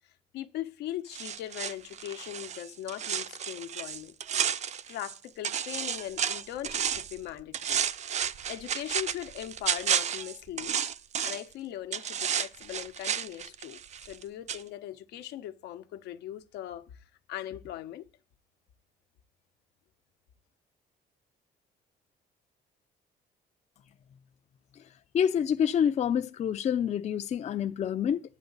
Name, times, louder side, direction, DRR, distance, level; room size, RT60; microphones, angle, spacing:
voice 1, 0.3-4.1 4.9-7.8 8.5-10.8 11.2-17.0 17.3-18.0, left 12 dB, 85° left, 1.0 m, -40 dB
sound 1, 1.1-5.2 5.4-7.2 7.5-11.5 11.9-14.2 14.5-14.6, right 8 dB, 45° right, 0.5 m, -32 dB
voice 2, 25.1-28.2, left 8 dB, 45° left, 0.5 m, -27 dB
11.5 x 9.2 x 4.0 m
cardioid pair, 105°, 17 cm